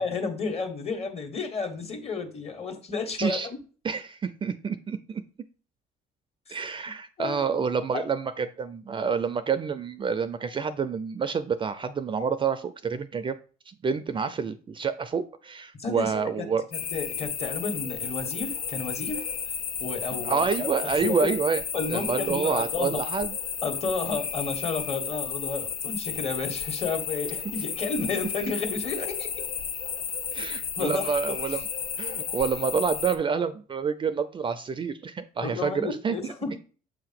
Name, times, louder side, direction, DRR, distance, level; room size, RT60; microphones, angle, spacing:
voice 1, 0.0-3.6 6.5-6.6 7.2-7.4 7.9-8.1 15.8-19.2 19.8-21.4 21.7-23.0 23.6-29.3 30.8-31.2 35.4-36.6, left 4 dB, 35° left, 5 dB, 1.6 m, -32 dB
voice 2, 3.8-5.2 6.5-13.4 13.7-16.6 20.1-21.6 21.9-23.3 30.3-31.6 32.0-36.3, right 6 dB, 30° right, 12 dB, 0.4 m, -28 dB
sound 1, 16.7-33.2, left 7 dB, 70° left, 1.1 m, -33 dB
7.3 x 2.8 x 5.9 m, 0.39 s
cardioid pair, 110°, 17 cm